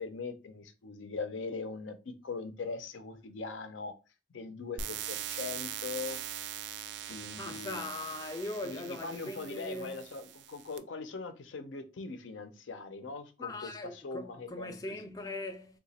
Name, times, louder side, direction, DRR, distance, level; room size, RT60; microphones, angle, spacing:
voice 1, 0.0-3.9 4.3-6.2 7.1-7.9 8.6-15.2, left 4 dB, 90° left, 0.6 m, -41 dB
sound 1, 4.8-10.8, right 9 dB, 70° right, 0.3 m, -41 dB
voice 2, 7.4-10.0 13.4-15.8, left 2 dB, 20° left, 0.3 m, -40 dB
2.9 x 2.2 x 4.1 m
head